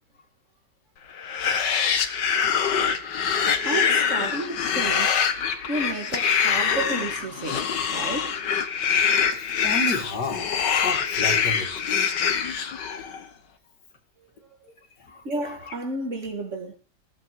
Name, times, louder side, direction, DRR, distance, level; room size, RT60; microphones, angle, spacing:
sound 1, 1.2-13.2, left 7 dB, 90° left, 1.9 m, -24 dB
voice 1, 3.6-5.2 5.7-8.4 13.0-13.1 15.2-16.8, right 2 dB, 45° right, 2.2 m, -32 dB
voice 2, 9.3-10.4 10.8-11.7 15.0-15.2, left 2 dB, 75° left, 2.8 m, -31 dB
16.0 x 7.3 x 5.6 m
omnidirectional pair, 1.8 m